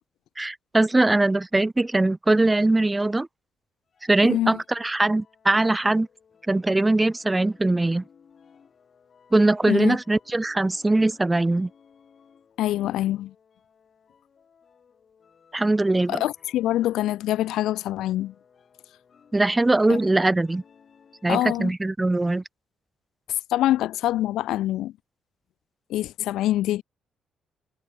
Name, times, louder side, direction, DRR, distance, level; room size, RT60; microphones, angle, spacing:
voice 1, 0.4-3.3 4.1-6.1 6.5-8.0 9.3-11.7 15.5-16.2 19.3-20.6 21.2-22.4, right 2 dB, 15° right, 0.7 m, -21 dB
sound 1, 3.9-21.6, left 6 dB, 50° left, 7.2 m, -58 dB
voice 2, 4.2-4.6 9.7-10.0 12.6-13.3 16.1-18.3 19.9-20.0 21.3-21.7 23.3-24.9 25.9-26.8, left 14 dB, 85° left, 0.4 m, -25 dB
cardioid pair, 90°, 0 cm